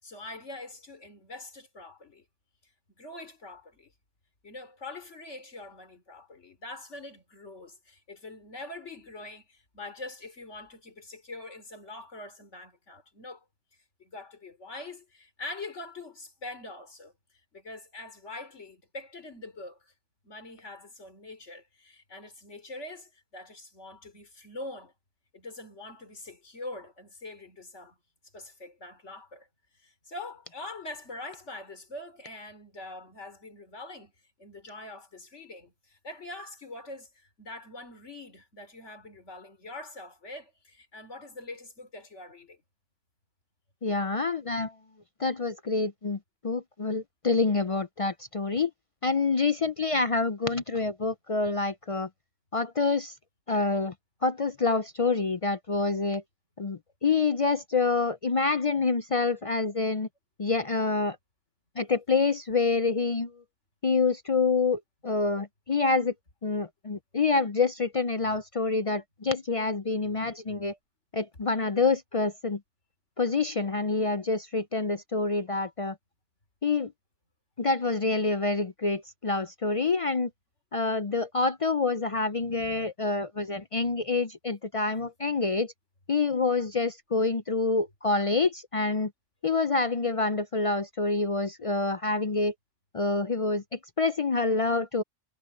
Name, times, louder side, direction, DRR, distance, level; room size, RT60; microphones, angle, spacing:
voice 1, 0.0-2.3 3.0-3.9 4.4-13.4 14.0-19.9 20.2-24.9 25.3-28.0 28.3-29.5 29.7-34.1 34.4-42.6, left 2 dB, 75° left, 3.9 m, -44 dB
voice 2, 43.8-44.7 45.2-46.2 46.4-48.7 49.0-52.1 52.5-53.1 53.5-53.9 54.2-56.2 56.6-60.1 60.4-61.2 61.8-63.3 63.8-66.1 66.4-70.7 71.1-72.6 73.2-76.0 76.6-76.9 77.6-80.3 80.7-85.7 86.1-89.1 89.4-92.5 92.9-95.0, left 3 dB, 45° left, 0.4 m, -27 dB
omnidirectional pair, 1.2 m